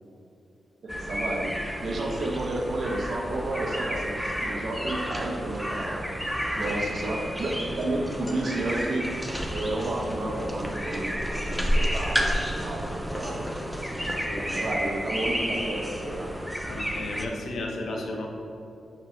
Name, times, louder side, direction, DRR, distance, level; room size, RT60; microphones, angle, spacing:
voice 1, 0.8-6.1 6.6-9.1 9.5-13.5 13.8-14.1 14.5-16.4, right 2 dB, 50° right, 0 dB, 0.8 m, -31 dB
sound 1, 0.9-17.3, equal, ahead, 0.5 m, -31 dB
voice 2, 14.3-14.6 16.7-18.3, left 2 dB, 65° left, 0 dB, 0.9 m, -34 dB
6.0 x 4.7 x 3.9 m, 2.8 s
wide cardioid pair, 160°, 0 cm